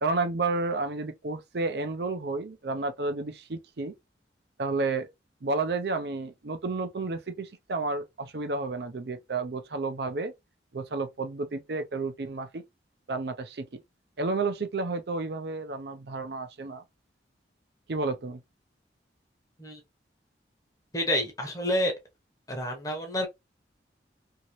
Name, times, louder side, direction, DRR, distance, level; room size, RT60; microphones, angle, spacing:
voice 1, 0.0-3.9 4.6-5.1 5.4-10.3 10.7-12.6 13.1-13.7 14.2-16.8 17.9-18.4, right 3 dB, 65° right, 0.5 m, -31 dB
voice 2, 20.9-21.9 22.5-23.3, left 1 dB, 20° left, 0.8 m, -28 dB
2.9 x 2.8 x 2.9 m
head